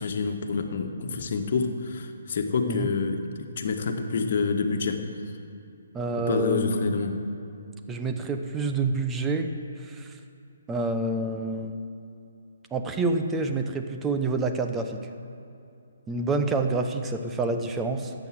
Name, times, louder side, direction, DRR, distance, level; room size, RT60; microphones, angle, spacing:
voice 1, 0.0-5.0 6.3-7.1, left 4 dB, 55° left, 5 dB, 1.6 m, -27 dB
voice 2, 5.9-6.9 7.9-9.5 9.8-10.1 10.7-11.8 12.7-15.0 16.1-18.1, right 3 dB, 15° right, 5 dB, 1.1 m, -27 dB
14.0 x 9.1 x 7.8 m, 2.6 s
figure-of-eight pair, 135°, 0 cm